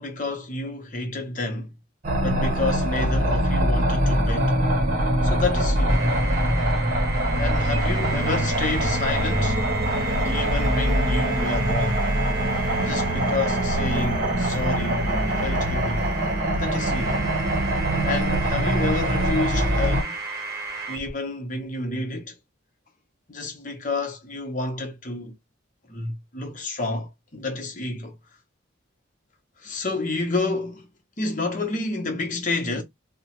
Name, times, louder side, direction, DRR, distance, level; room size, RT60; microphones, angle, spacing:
voice 1, 0.0-1.7 2.2-4.6 5.2-6.2 7.4-9.6 10.2-12.0 12.8-15.1 15.4-16.1 16.6-17.3 18.0-20.2 20.9-22.4 23.3-25.3 25.9-28.2 29.6-30.9 31.2-32.8, left 2 dB, 40° left, 0.8 m, -29 dB
sound 1, 2.0-20.0, equal, 40° right, 0.8 m, -23 dB
sound 2, 5.9-21.1, right 4 dB, 15° right, 1.1 m, -33 dB
3.0 x 2.1 x 2.9 m
head